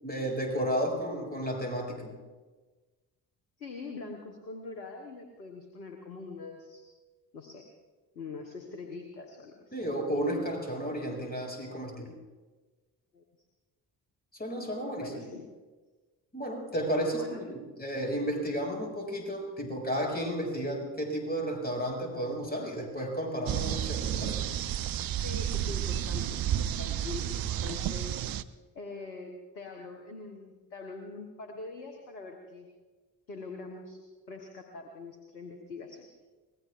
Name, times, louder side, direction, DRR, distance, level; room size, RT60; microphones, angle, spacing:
voice 1, 0.0-2.1 9.7-12.1 14.3-15.1 16.3-24.4, equal, 20° left, 1 dB, 5.9 m, -33 dB
voice 2, 3.6-6.9 7.3-7.7 8.1-9.7 13.1-13.2 14.8-15.5 16.9-17.4 25.2-28.2 28.7-32.7 33.3-34.0 34.3-36.1, left 3 dB, 85° left, 4 dB, 1.3 m, -43 dB
sound 1, 23.5-28.4, right 10 dB, 45° right, 0.7 m, -31 dB
25.5 x 20.5 x 2.5 m, 1.3 s
figure-of-eight pair, 45°, 49 cm